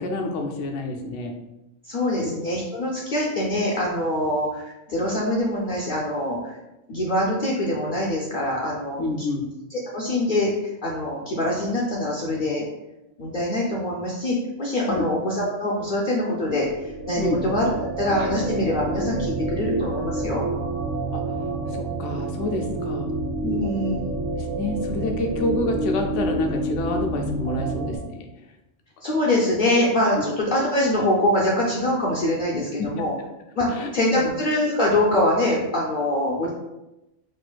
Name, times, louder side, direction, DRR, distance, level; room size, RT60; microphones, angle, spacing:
voice 1, 0.0-1.3 2.2-2.3 9.0-9.5 14.9-15.0 17.2-17.4 21.1-21.2 21.7-23.1 24.4-28.3 32.8-33.1 33.7-33.9 34.2-34.3, left 2 dB, 75° left, 3 dB, 0.9 m, -28 dB
voice 2, 1.8-4.6 4.9-6.6 6.9-9.3 9.7-12.6 13.2-20.4 23.4-24.1 29.0-33.1 33.6-36.5, left 1 dB, 55° left, -4 dB, 0.6 m, -24 dB
sound 1, 16.5-28.0, right 2 dB, 65° right, 0.9 m, -28 dB
4.1 x 2.5 x 2.2 m, 0.95 s
omnidirectional pair, 1.3 m